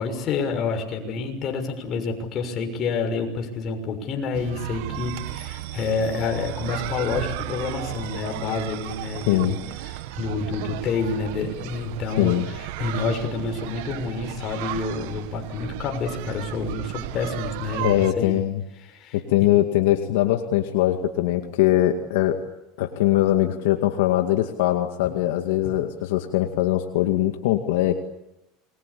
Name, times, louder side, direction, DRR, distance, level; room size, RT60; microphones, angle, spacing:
voice 1, 0.0-9.6 9.8-18.4 18.9-19.2 25.6-25.7, left 4 dB, 40° left, 5 dB, 6.4 m, -28 dB
sound 1, 4.3-18.1, right 16 dB, 75° right, 1.5 m, -34 dB
voice 2, 9.3-9.6 12.2-12.4 17.8-18.6 19.1-22.4 22.8-28.0, left 13 dB, 80° left, 5 dB, 2.2 m, -21 dB
28.0 x 22.5 x 8.6 m, 0.90 s
supercardioid pair, 120°, 0 cm